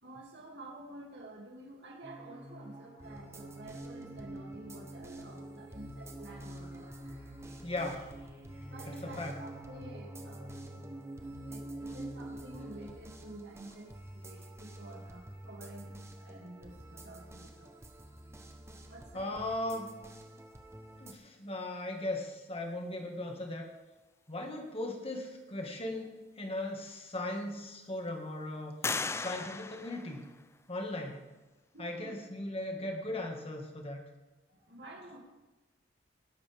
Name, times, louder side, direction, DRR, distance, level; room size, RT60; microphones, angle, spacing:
voice 1, 0.0-6.9 8.6-10.8 11.4-17.8 18.6-19.4 31.7-32.1 34.5-35.2, right 2 dB, 65° right, -1 dB, 2.6 m, -50 dB
sound 1, 2.0-12.9, right 1 dB, 30° right, 4.4 m, -46 dB
sound 2, 3.0-21.1, right 1 dB, 15° right, 1.0 m, -51 dB
voice 2, 7.6-8.1 8.9-9.4 19.1-19.9 21.0-23.7 24.3-28.8 29.1-30.2 30.7-31.3 31.8-34.0, left 1 dB, 30° left, 3 dB, 1.8 m, -38 dB
sound 3, 26.6-26.7 27.2-27.9 28.8-30.8, left 4 dB, 15° left, 0.3 m, -38 dB
19.0 x 11.0 x 3.5 m, 1.1 s
head